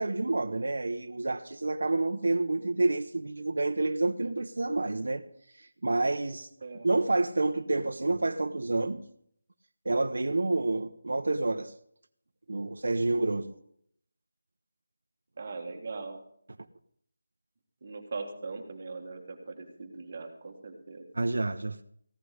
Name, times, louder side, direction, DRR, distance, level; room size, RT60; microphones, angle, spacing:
voice 1, 0.0-5.2 5.6-6.5 6.8-9.0 9.8-11.7 12.5-13.5 21.1-21.8, right 2 dB, 70° right, 0.8 m, -28 dB
voice 2, 15.4-16.2 17.8-21.1, right 3 dB, 30° right, 1.6 m, -40 dB
15.5 x 10.0 x 4.9 m
figure-of-eight pair, 175°, 0 cm